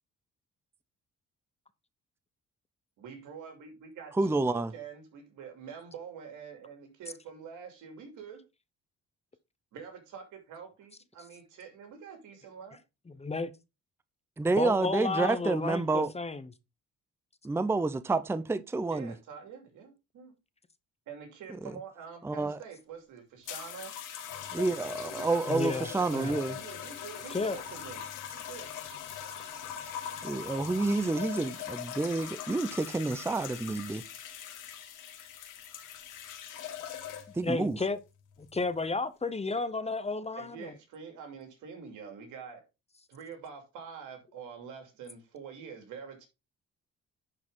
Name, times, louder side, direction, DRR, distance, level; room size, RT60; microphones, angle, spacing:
voice 1, 3.0-8.5 9.7-12.8 18.9-20.3 21.1-24.0 26.0-28.7 40.4-42.7 43.1-46.3, right 6 dB, 85° right, 2.7 m, -46 dB
voice 2, 4.2-4.7 14.4-16.1 17.4-19.1 21.6-21.8 22.2-22.6 24.5-26.6 30.2-34.0 37.4-37.8, right 3 dB, 10° right, 0.5 m, -29 dB
voice 3, 13.2-13.5 14.6-16.5 25.5-26.3 27.3-27.6 37.4-38.0 38.5-40.7, left 3 dB, 20° left, 0.8 m, -32 dB
sound 1, 23.5-37.5 38.4-38.7, left 9 dB, 85° left, 1.9 m, -41 dB
11.0 x 4.8 x 3.7 m
cardioid pair, 90°, 30 cm